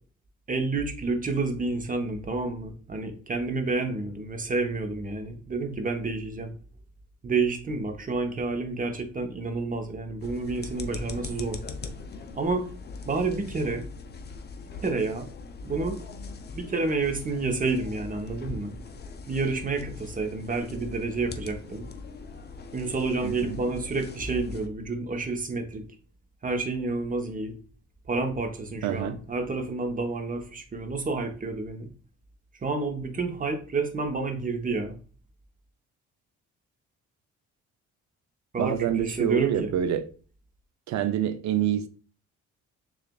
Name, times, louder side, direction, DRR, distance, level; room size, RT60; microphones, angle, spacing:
voice 1, 0.5-6.5 7.2-11.6 12.4-12.7 13.0-13.8 14.8-15.3 15.6-16.0 16.5-18.8 19.3-22.1 22.7-25.9 26.4-27.6 28.1-31.9 32.6-35.0 38.5-39.8, right 3 dB, 25° right, 0.8 m, -29 dB
sound 1, 10.2-24.7, left 4 dB, 35° left, 0.5 m, -41 dB
voice 2, 23.2-23.6 28.8-29.2 38.6-40.1 40.9-41.9, right 10 dB, 70° right, 0.5 m, -26 dB
6.6 x 2.4 x 2.2 m
cardioid pair, 90°, 30 cm